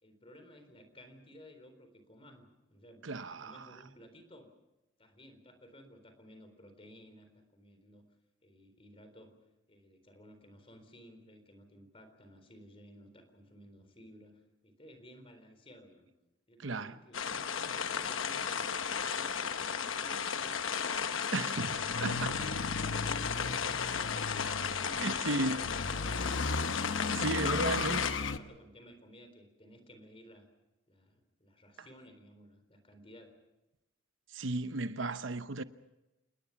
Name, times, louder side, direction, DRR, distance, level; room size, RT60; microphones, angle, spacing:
voice 1, 0.0-2.4 2.7-3.0 3.3-4.5 5.0-8.0 8.4-9.3 9.7-16.1 16.5-18.7 19.0-20.8 24.3-27.0 27.6-30.5 30.9-33.3, equal, 30° left, 4.0 m, -56 dB
voice 2, 3.0-3.7 16.6-17.0 21.3-22.3 24.3-25.7 27.1-28.1 34.3-35.6, right 2 dB, 70° right, 0.9 m, -35 dB
sound 1, 17.1-28.1, left 7 dB, 85° left, 1.1 m, -34 dB
sound 2, 21.7-28.4, left 3 dB, 70° left, 1.0 m, -37 dB
28.5 x 20.0 x 5.9 m
head